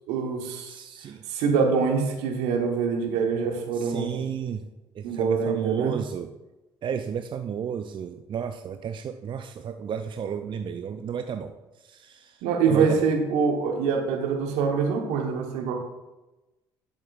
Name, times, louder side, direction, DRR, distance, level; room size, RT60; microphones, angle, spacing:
voice 1, 0.1-0.8 1.3-4.2 5.0-6.0 12.4-15.7, right 5 dB, 70° right, 3 dB, 1.2 m, -25 dB
voice 2, 0.7-1.2 3.7-4.7 4.9-6.3 6.8-13.1, right 7 dB, 40° right, 8 dB, 0.5 m, -33 dB
11.5 x 6.5 x 2.5 m, 1.0 s
figure-of-eight pair, 50°, 12 cm